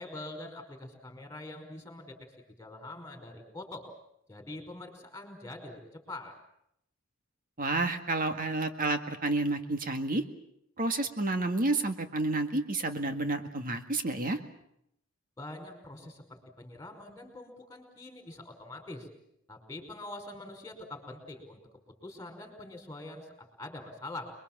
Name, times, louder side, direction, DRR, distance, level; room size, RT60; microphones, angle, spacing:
voice 1, 0.0-2.2 2.6-3.8 4.3-6.3 15.4-19.1 19.5-21.6 22.0-24.3, left 2 dB, 15° left, 5 dB, 5.2 m, -44 dB
voice 2, 7.6-10.2 10.8-14.4, right 2 dB, 40° right, 7 dB, 1.9 m, -30 dB
28.0 x 22.5 x 7.5 m, 0.78 s
head